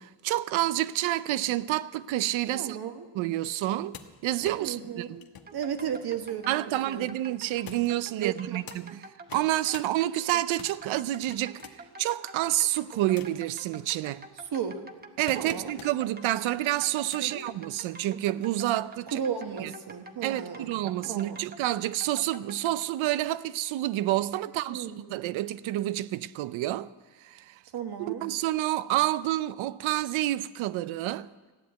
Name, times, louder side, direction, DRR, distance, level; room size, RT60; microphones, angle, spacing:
voice 1, 0.0-2.8 3.1-5.1 6.5-11.6 12.0-14.2 15.2-19.2 19.6-19.7 20.2-26.9 27.2-27.5 28.2-31.3, right 15 dB, 85° right, 0.6 m, -29 dB
voice 2, 2.5-3.1 4.6-5.2 5.5-7.1 8.2-8.6 14.5-14.8 15.3-15.8 17.2-17.4 19.1-20.7 21.0-21.4 24.6-25.2 27.7-28.2, right 8 dB, 55° right, 1.4 m, -34 dB
sound 1, 3.5-6.9 7.6-8.8 9.2-9.9 10.3-12.0 12.6-13.5 14.1-16.1 16.8-17.5 18.5-18.6, left 7 dB, 50° left, 1.2 m, -49 dB
sound 2, 5.5-22.8, right 3 dB, 20° right, 1.0 m, -47 dB
15.0 x 10.0 x 8.1 m
cardioid pair, 145°, 46 cm